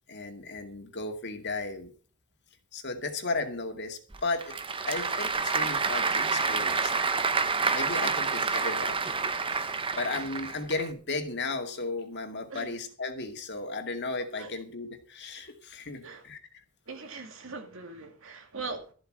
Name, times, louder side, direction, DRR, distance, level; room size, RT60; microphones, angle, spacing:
voice 1, 0.1-1.9 2.7-4.6 4.9-7.1 7.7-9.0 9.5-9.7 10.0-16.4, left 3 dB, 55° left, 2.2 m, -35 dB
Applause / Crowd, 4.1-10.9, right 4 dB, 25° right, 0.8 m, -28 dB
voice 2, 16.9-18.9, right 3 dB, 65° right, 2.4 m, -41 dB
13.5 x 7.7 x 6.3 m
head